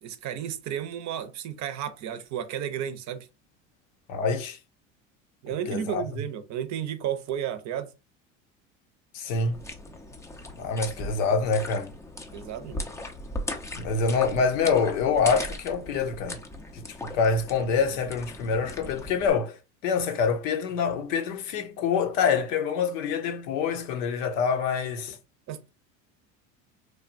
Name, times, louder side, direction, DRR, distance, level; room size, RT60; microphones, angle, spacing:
voice 1, 0.0-3.3 5.4-7.9 12.3-12.8 25.5-25.7, right 9 dB, 45° right, 0.6 m, -33 dB
voice 2, 4.1-4.6 5.7-6.0 9.1-9.6 10.5-11.9 13.8-16.4 16.7-19.6 19.8-25.2, left 5 dB, 75° left, 0.8 m, -26 dB
sound 1, 9.5-19.3, left 1 dB, 10° left, 0.4 m, -38 dB
3.2 x 2.2 x 2.5 m
hypercardioid pair, 85°, 39 cm